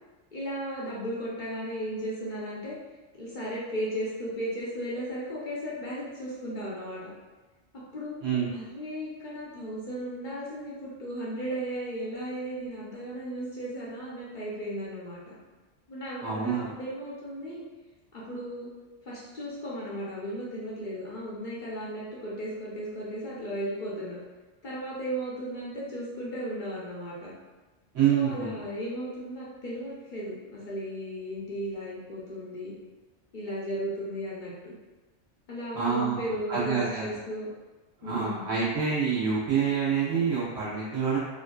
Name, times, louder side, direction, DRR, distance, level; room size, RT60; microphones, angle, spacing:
voice 1, 0.3-2.7 3.2-7.1 7.9-8.2 8.5-15.4 15.9-17.6 18.1-18.7 19.1-24.2 24.6-27.3 28.1-32.7 33.3-34.7 35.5-37.5 38.0-38.5, equal, 50° left, -7 dB, 0.7 m, -35 dB
voice 2, 16.2-16.7 27.9-28.6 35.7-36.1 36.5-37.1 38.0-41.2, right 6 dB, 80° right, -9 dB, 1.5 m, -27 dB
3.5 x 2.5 x 2.3 m, 1.2 s
omnidirectional pair, 1.3 m